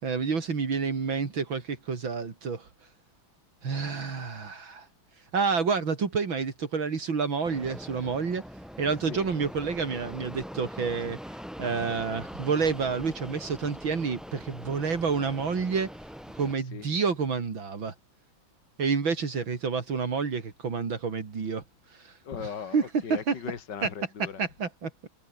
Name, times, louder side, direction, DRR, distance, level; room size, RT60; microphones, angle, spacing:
voice 1, 0.0-2.7 3.6-4.9 5.3-8.4 8.8-15.9 16.4-17.9 18.8-21.6 21.9-22.1 22.7-22.8 23.1-23.3 23.8-23.9 24.4-25.1, right 5 dB, 75° right, 3.7 m, -29 dB
Fixed-wing aircraft airplane, 7.4-16.5, equal, ahead, 5.1 m, -42 dB
voice 2, 22.2-24.4, left 7 dB, 60° left, 2.7 m, -38 dB
omnidirectional pair, 2.2 m